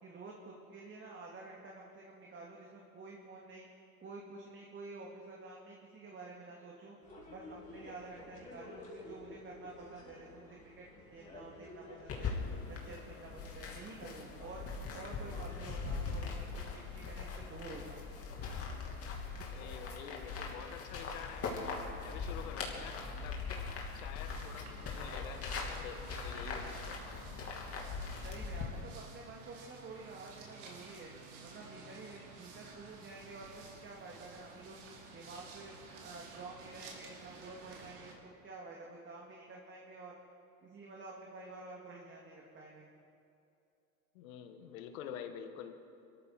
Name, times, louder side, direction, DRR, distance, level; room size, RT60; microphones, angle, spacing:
voice 1, 0.0-3.7 4.0-7.0 7.3-12.3 12.7-14.7 14.9-18.1 28.2-31.1 31.4-34.8 35.1-40.2 40.6-42.9, right 3 dB, 25° right, -2 dB, 2.4 m, -50 dB
sound 1, 7.0-15.5, left 2 dB, 15° left, 4.8 m, -53 dB
sound 2, 12.1-28.7, left 4 dB, 35° left, 3.1 m, -41 dB
voice 2, 19.5-21.5 22.0-23.4 23.9-27.3 44.1-45.8, left 8 dB, 70° left, 7 dB, 1.7 m, -48 dB
sound 3, 24.2-38.1, right 4 dB, 60° right, 4.1 m, -53 dB
23.5 x 14.0 x 4.3 m, 2.6 s
hypercardioid pair, 100°, 43 cm